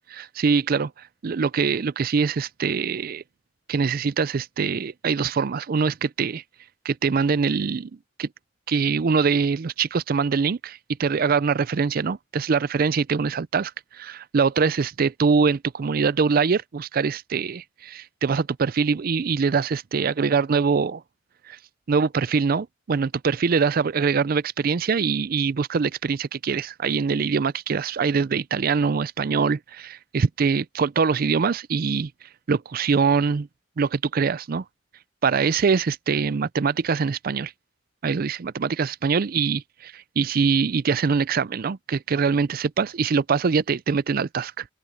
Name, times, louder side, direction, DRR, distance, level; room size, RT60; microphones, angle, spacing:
voice 1, 0.1-0.9 1.2-3.2 3.7-6.4 6.8-7.9 8.2-8.3 8.7-21.0 21.5-21.6 21.9-32.1 32.5-33.5 33.8-34.6 35.2-37.5 38.0-44.7, right 5 dB, 50° right, 0.4 m, -23 dB
head